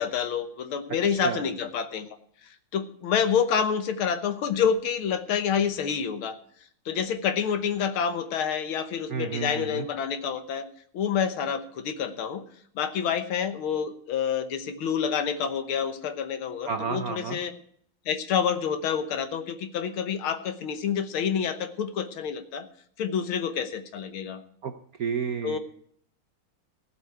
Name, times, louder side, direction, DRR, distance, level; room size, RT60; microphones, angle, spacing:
voice 1, 0.0-2.1 2.7-6.4 6.9-10.7 10.9-12.4 12.8-17.5 18.1-22.7 23.0-24.4 25.4-25.6, left 7 dB, 75° left, 10 dB, 1.9 m, -28 dB
voice 2, 1.1-1.5 9.1-9.9 16.7-17.4 24.6-24.7 25.0-25.6, right 6 dB, 60° right, 7 dB, 0.9 m, -31 dB
15.0 x 5.7 x 9.2 m, 0.63 s
omnidirectional pair, 2.4 m